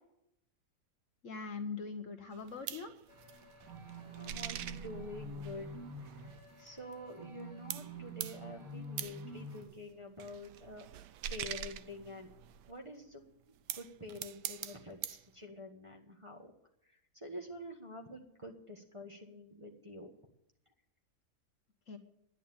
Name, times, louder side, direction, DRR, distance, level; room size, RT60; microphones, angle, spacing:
voice 1, 1.2-2.9 21.9-22.0, left 5 dB, 55° left, 6 dB, 1.3 m, -41 dB
Princess Mononoke - Forest spirits (kodama), 2.3-7.4 7.7-12.7 13.4-15.3, right 10 dB, 90° right, 1.3 m, -44 dB
sound 1, 3.1-9.6, right 1 dB, 40° right, 4.1 m, -47 dB
voice 2, 4.1-5.7 6.6-10.9 11.3-12.3 12.7-13.2 13.7-16.5 17.1-20.1, left 1 dB, 20° right, -1 dB, 1.3 m, -47 dB
11.0 x 9.2 x 8.7 m, 0.81 s
omnidirectional pair, 1.7 m